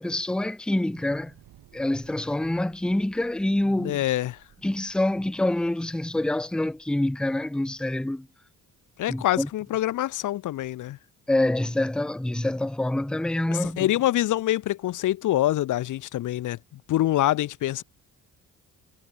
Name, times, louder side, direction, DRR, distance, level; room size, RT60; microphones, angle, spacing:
voice 1, 0.0-1.3 1.7-4.0 4.6-8.3 9.1-9.5 11.3-13.9, left 1 dB, 5° left, 0.7 m, -26 dB
Thunder / Explosion, 0.8-9.0, right 13 dB, 80° right, 7.4 m, -58 dB
voice 2, 3.8-4.4 9.0-11.0 13.5-16.6 16.9-17.8, left 14 dB, 65° left, 0.7 m, -25 dB
cardioid pair, 140°, 33 cm